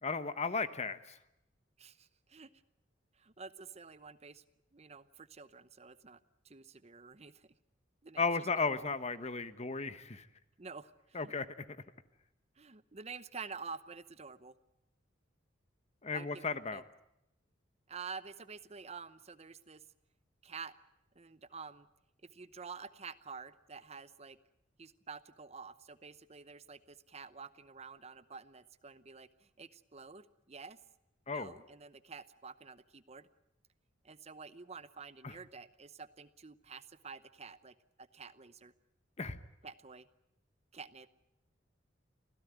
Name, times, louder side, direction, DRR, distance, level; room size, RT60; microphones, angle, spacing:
voice 1, 0.0-1.2 8.2-10.3 11.1-11.6 16.0-16.8 31.3-31.5 35.2-35.3 39.2-39.4, left 4 dB, 35° left, 12 dB, 1.1 m, -35 dB
voice 2, 1.8-2.5 3.1-4.4 4.7-6.2 6.4-7.5 8.0-8.3 8.7-8.9 10.6-11.3 12.6-14.5 16.1-16.8 17.9-19.8 20.4-20.7 21.2-21.9 22.2-24.4 24.8-30.8 31.3-33.3 34.0-38.7 39.6-40.1 40.7-41.1, right 5 dB, 35° right, 14 dB, 0.8 m, -49 dB
25.5 x 16.5 x 9.3 m, 0.84 s
head